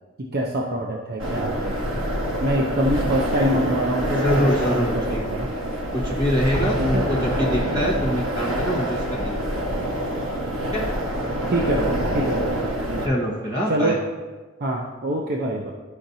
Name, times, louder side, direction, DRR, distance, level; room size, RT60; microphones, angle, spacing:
voice 1, 0.2-1.8 2.4-5.5 6.8-7.0 11.5-12.5 12.9-13.1 13.7-14.0 14.6-15.7, right 1 dB, 50° right, -1 dB, 0.6 m, -25 dB
sound 1, 1.2-13.1, right 1 dB, 90° right, 1.2 m, -26 dB
voice 2, 4.2-5.4 5.9-9.3 9.7-9.8 10.7-10.8 13.0-14.0, equal, 20° right, -5 dB, 1.1 m, -25 dB
Explosion, 6.5-8.2, left 1 dB, 75° left, 1.0 m, -31 dB
12.0 x 5.1 x 2.7 m, 1.3 s
head